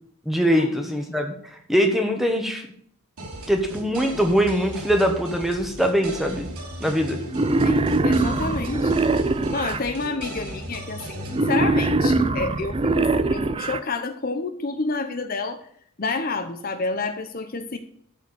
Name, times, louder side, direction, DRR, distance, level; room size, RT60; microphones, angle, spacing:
voice 1, 0.2-1.3 1.7-2.6 3.5-6.5 6.8-7.2, equal, ahead, 4 dB, 1.3 m, -22 dB
sound 1, 3.2-11.5, right 1 dB, 90° right, 3.0 m, -36 dB
Wild animals, 7.3-9.8 11.3-13.8, right 2 dB, 25° right, 0.5 m, -22 dB
voice 2, 7.6-8.9 9.5-15.6 16.0-17.8, left 3 dB, 40° left, 7 dB, 0.8 m, -29 dB
12.5 x 4.7 x 8.2 m, 0.64 s
head